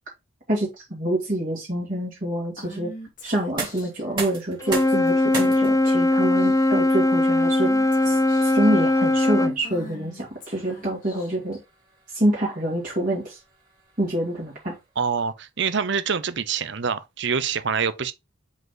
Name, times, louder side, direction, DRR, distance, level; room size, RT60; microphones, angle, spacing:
voice 1, 0.5-2.9 3.2-7.7 8.0-11.6 12.1-13.4 14.0-14.7, right 1 dB, 40° right, 2.6 m, -26 dB
Female speech woman speaking / Whispering, 2.6-4.0 5.0-5.5 5.9-6.0 6.3-6.9 7.6-8.7 9.6-11.6, left 1 dB, 40° left, 1.9 m, -43 dB
sound 1, 3.3-15.1, right 4 dB, 25° right, 2.8 m, -40 dB
Wind instrument woodwind instrument, 4.6-9.6, left 1 dB, 15° left, 0.5 m, -20 dB
voice 2, 15.0-18.1, right 6 dB, 55° right, 0.7 m, -25 dB
5.2 x 5.1 x 3.8 m
head